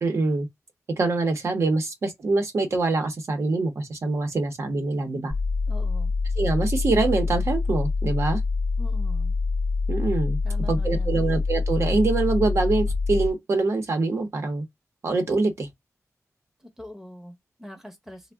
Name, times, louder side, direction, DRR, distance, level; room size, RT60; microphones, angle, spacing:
voice 1, 0.0-0.5 1.0-5.3 6.4-8.4 9.9-10.4 10.7-14.6 15.0-15.7, right 3 dB, 55° right, 0.7 m, -24 dB
sound 1, 5.3-13.3, left 4 dB, 35° left, 0.6 m, -25 dB
voice 2, 5.7-6.1 8.8-9.3 10.4-11.2 16.6-18.3, equal, 5° right, 0.8 m, -43 dB
3.4 x 2.1 x 3.4 m
wide cardioid pair, 180°, 6 cm